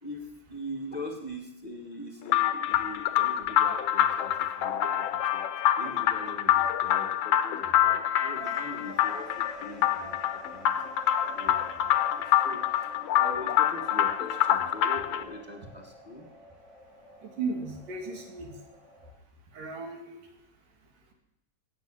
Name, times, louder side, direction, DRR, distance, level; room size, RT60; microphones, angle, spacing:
voice 1, 0.0-5.4 5.8-10.2 10.5-10.7 11.4-16.3, left 1 dB, 30° left, 2 dB, 0.8 m, -42 dB
sound 1, 2.3-15.2, left 11 dB, 70° left, 1.5 m, -26 dB
sound 2, 8.3-19.1, equal, ahead, 6.5 m, -49 dB
voice 2, 17.2-18.5 19.5-20.2, right 4 dB, 85° right, 2 dB, 4.0 m, -35 dB
16.0 x 7.7 x 8.8 m, 0.86 s
omnidirectional pair, 3.7 m